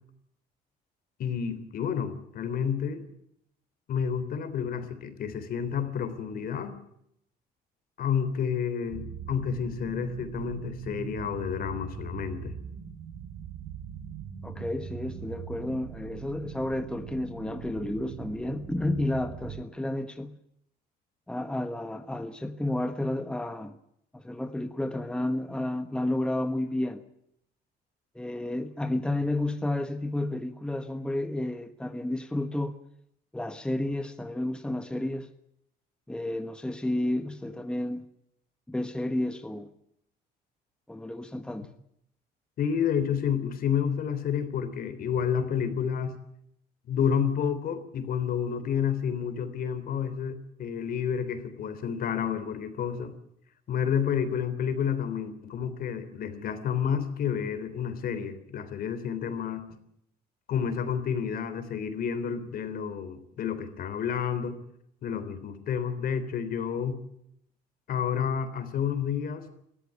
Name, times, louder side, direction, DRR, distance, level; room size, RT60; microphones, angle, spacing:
voice 1, 1.2-3.0 3.9-6.8 8.0-12.5 42.6-46.2 46.9-53.1 53.7-59.6 60.5-64.6 65.0-67.0 67.9-69.5, left 7 dB, 60° left, 3.5 m, -30 dB
sound 1, 8.9-19.6, right 8 dB, 70° right, 2.1 m, -41 dB
voice 2, 14.4-20.4 21.3-23.8 24.1-27.0 28.1-32.7 33.3-35.3 36.1-38.0 38.7-39.7 40.9-41.7, left 1 dB, 5° left, 1.3 m, -31 dB
21.5 x 14.0 x 9.6 m
cardioid pair, 110°, 17 cm